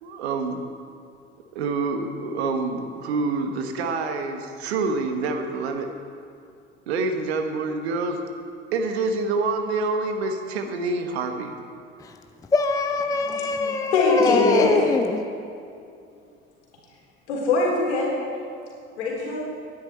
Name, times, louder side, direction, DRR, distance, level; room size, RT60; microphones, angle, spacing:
voice 1, 0.0-0.6 1.5-5.9 6.9-8.2 8.7-11.5, right 3 dB, 65° right, 6 dB, 1.3 m, -27 dB
voice 2, 12.5-15.2, left 3 dB, 10° left, 7 dB, 0.6 m, -23 dB
voice 3, 13.2-14.9 17.3-18.1 19.0-19.4, left 3 dB, 70° left, -4 dB, 3.8 m, -22 dB
15.5 x 10.5 x 4.4 m, 2.5 s
figure-of-eight pair, 65°, 34 cm